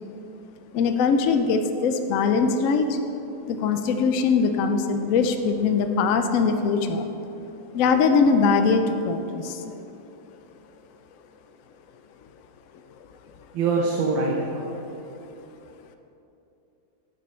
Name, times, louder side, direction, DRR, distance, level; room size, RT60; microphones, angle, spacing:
voice 1, 0.7-3.0 3.5-7.0 7.7-9.6, left 5 dB, 80° left, 7 dB, 0.7 m, -21 dB
voice 2, 13.5-14.7, right 3 dB, 80° right, -1 dB, 1.6 m, -24 dB
10.0 x 7.8 x 4.4 m, 2.9 s
omnidirectional pair, 2.0 m